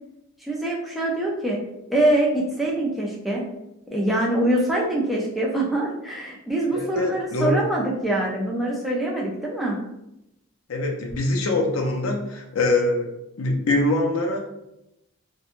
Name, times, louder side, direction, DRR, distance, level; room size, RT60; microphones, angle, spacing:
voice 1, 0.4-1.6 1.9-3.4 3.9-9.8, right 1 dB, ahead, -4 dB, 0.4 m, -24 dB
voice 2, 6.7-7.6 10.7-13.1 13.4-14.4, left 2 dB, 65° left, 1 dB, 0.5 m, -23 dB
2.9 x 2.2 x 2.5 m, 0.87 s
head